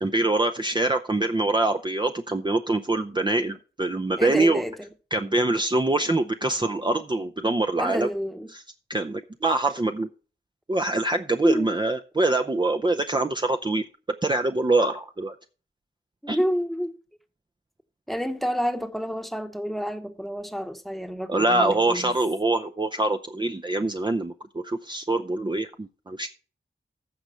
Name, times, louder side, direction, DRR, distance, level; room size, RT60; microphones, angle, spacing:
voice 1, 0.0-4.6 5.1-8.1 8.5-8.6 8.9-10.1 10.7-13.9 14.2-15.3 16.3-16.4 21.3-26.3, right 2 dB, 25° right, 0.6 m, -24 dB
voice 2, 4.2-4.9 7.8-8.5 11.4-11.7 16.2-16.9 18.1-22.1, equal, ahead, 1.1 m, -29 dB
14.5 x 5.3 x 4.4 m
cardioid pair, 55°, 20 cm